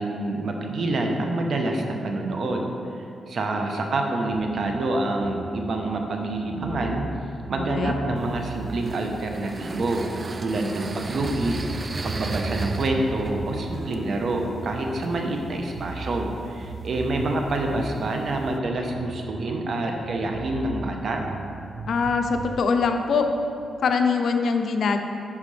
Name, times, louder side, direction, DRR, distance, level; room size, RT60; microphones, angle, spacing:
voice 1, 0.0-2.7 3.3-7.1 7.5-11.6 12.0-21.2, right 2 dB, 60° right, 2 dB, 0.9 m, -27 dB
sound 1, 4.3-10.6 10.9-15.2 15.5-19.8 20.0-22.6, right 3 dB, 80° right, 0.6 m, -38 dB
sound 2, 8.2-18.6, right 3 dB, 35° right, 0.3 m, -36 dB
voice 2, 21.9-23.3 23.8-25.0, left 5 dB, 70° left, 5 dB, 0.6 m, -22 dB
11.0 x 5.0 x 3.3 m, 2.5 s
cardioid pair, 85°, 0 cm